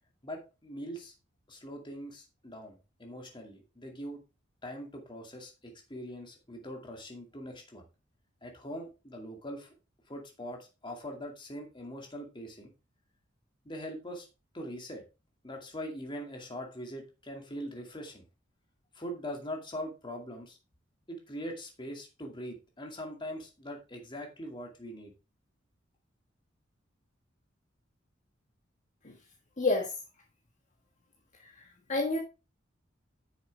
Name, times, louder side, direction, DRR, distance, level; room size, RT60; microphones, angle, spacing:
voice 1, 0.2-1.1 1.5-4.2 4.6-7.9 8.4-9.7 10.1-12.7 13.6-14.3 14.5-15.0 15.4-18.2 18.9-20.6 21.1-25.1, equal, 25° left, 2 dB, 2.3 m, -42 dB
voice 2, 29.6-29.9 31.9-32.2, left 2 dB, 40° left, 0 dB, 1.6 m, -27 dB
9.3 x 7.0 x 3.5 m, 0.29 s
head